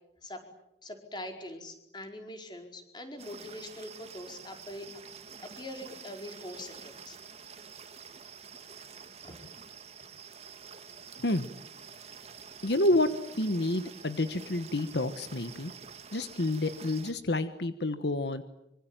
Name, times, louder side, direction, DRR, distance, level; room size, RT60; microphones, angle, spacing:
voice 1, 0.8-4.9 5.4-7.2 9.2-9.4, left 1 dB, 25° left, 4 dB, 4.9 m, -43 dB
sound 1, 3.2-17.1, right 6 dB, 35° right, 1.8 m, -48 dB
voice 2, 12.6-13.1 13.3-15.7 16.1-18.4, left 2 dB, 70° left, 10 dB, 1.3 m, -29 dB
25.0 x 25.0 x 8.9 m, 0.85 s
head